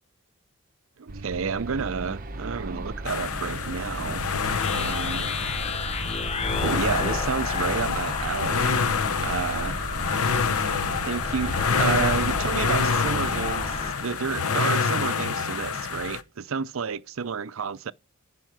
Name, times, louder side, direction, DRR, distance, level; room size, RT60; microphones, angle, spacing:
voice 1, 1.0-4.2 4.7-5.3 6.5-8.7 9.2-9.8 11.0-17.9, right 6 dB, 65° right, 0.5 m, -30 dB
sound 1, 1.1-13.9, right 1 dB, 40° right, 0.9 m, -35 dB
sound 2, 3.0-16.2, left 5 dB, 80° left, 0.9 m, -27 dB
sound 3, 4.6-14.0, left 5 dB, 30° left, 0.7 m, -34 dB
14.0 x 5.6 x 5.9 m
head